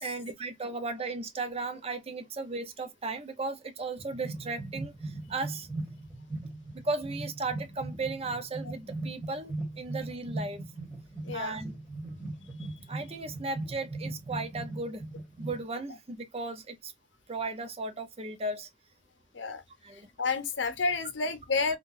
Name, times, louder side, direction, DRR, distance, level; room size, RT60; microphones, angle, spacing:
voice 1, 0.0-5.7 6.7-10.6 11.3-11.7 12.9-15.0 15.4-16.9 17.3-18.7 19.8-20.1, right 3 dB, 30° right, 0.6 m, -36 dB
sound 1, 4.0-15.6, right 2 dB, 5° right, 1.6 m, -39 dB
voice 2, 11.2-11.6 19.3-19.6 19.9-21.8, left 4 dB, 75° left, 0.7 m, -30 dB
3.7 x 2.4 x 2.5 m
head